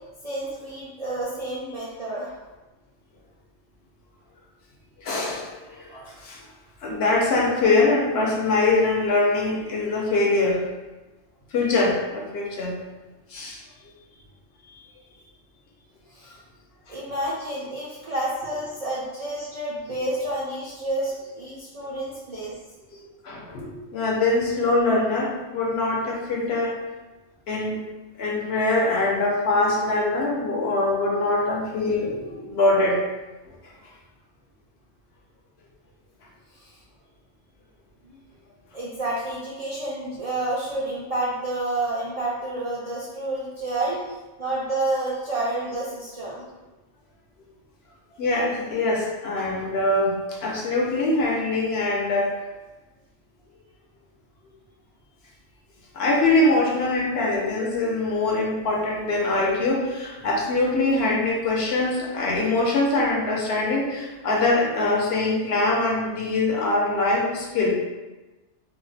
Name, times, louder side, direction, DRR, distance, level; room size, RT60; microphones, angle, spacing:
voice 1, 0.2-2.4 16.1-16.4 16.9-22.5 36.5-36.8 38.7-44.0 44.4-46.4, right 2 dB, 55° right, -7 dB, 0.4 m, -29 dB
voice 2, 5.0-6.4 6.8-10.6 11.5-12.7 13.3-13.6 23.2-26.7 27.5-27.8 28.2-33.0 48.2-52.3 55.9-67.7, left 2 dB, 65° left, -2 dB, 0.9 m, -23 dB
2.6 x 2.1 x 3.9 m, 1.1 s
omnidirectional pair, 1.2 m